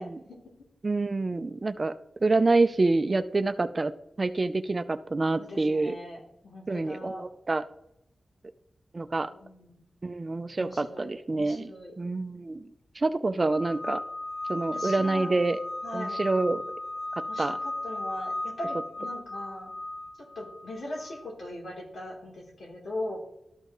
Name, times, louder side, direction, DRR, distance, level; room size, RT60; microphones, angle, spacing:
voice 1, 0.0-0.6 5.3-7.2 9.4-9.9 10.6-11.9 14.7-15.4 15.8-16.2 17.3-19.7 20.2-23.2, left 1 dB, 75° left, -3 dB, 3.1 m, -40 dB
voice 2, 0.8-1.9 2.2-3.9 4.2-6.0 6.7-7.6 8.9-9.3 10.0-11.7 12.0-12.7 13.0-14.0 14.5-15.6 15.9-16.6 17.4-17.6, right 3 dB, 35° right, 12 dB, 0.4 m, -27 dB
sound 1, 13.5-21.2, left 2 dB, 15° left, 1.8 m, -36 dB
12.5 x 5.6 x 3.0 m, 0.80 s
wide cardioid pair, 125°, 0 cm